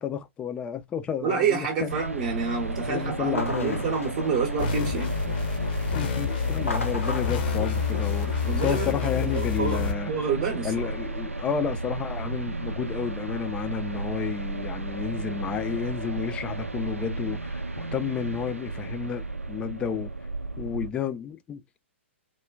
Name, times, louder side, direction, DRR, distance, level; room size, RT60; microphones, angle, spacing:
voice 1, 0.0-2.0 2.9-3.9 5.9-8.3 8.6-10.1 10.6-20.1 20.6-21.8, left 8 dB, 15° left, 0.4 m, -31 dB
voice 2, 1.2-5.2 8.4-10.9, right 5 dB, 35° right, 0.7 m, -28 dB
sound 1, 1.9-20.9, right 2 dB, 90° right, 0.4 m, -33 dB
sound 2, 3.2-5.4 6.5-9.0, left 2 dB, 80° left, 0.7 m, -37 dB
sound 3, 4.6-9.9, left 7 dB, 45° left, 0.7 m, -28 dB
3.3 x 2.1 x 2.2 m
figure-of-eight pair, 115°, 7 cm